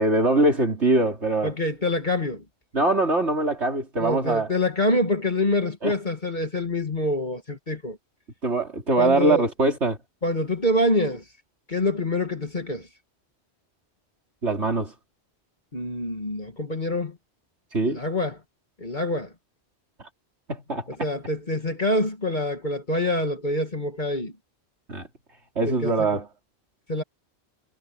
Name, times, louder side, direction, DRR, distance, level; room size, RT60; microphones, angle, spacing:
voice 1, 0.0-1.5 2.7-4.5 5.8-5.9 8.4-10.0 14.4-14.9 17.7-18.0 20.5-20.9 24.9-25.1 25.6-26.3, right 2 dB, 80° right, 4.2 m, -22 dB
voice 2, 1.4-2.4 4.0-8.0 9.0-9.4 10.2-11.2 11.7-12.9 15.7-17.2 17.9-18.4 18.8-19.3 21.0-24.3 25.7-26.1 26.9-27.0, left 1 dB, 45° left, 2.2 m, -26 dB
omnidirectional pair, 1.1 m